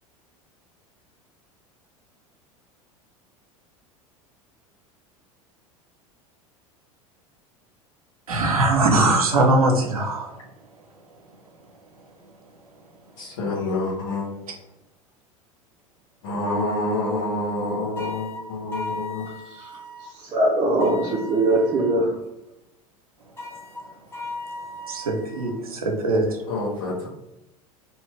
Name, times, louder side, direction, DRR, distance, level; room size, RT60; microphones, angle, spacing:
voice 1, 8.3-10.4 24.9-26.4, right 2 dB, 85° right, 2 dB, 0.6 m, -21 dB
voice 2, 13.2-14.3 16.2-19.3 26.5-27.1, left 2 dB, 65° left, -3 dB, 1.0 m, -27 dB
sound 1, 18.0-20.1 20.8-22.1 23.4-25.5, left 2 dB, 15° left, 0.8 m, -37 dB
voice 3, 20.2-22.1, right 2 dB, 25° right, -2 dB, 0.6 m, -21 dB
2.8 x 2.4 x 3.2 m, 0.90 s
figure-of-eight pair, 80°, 18 cm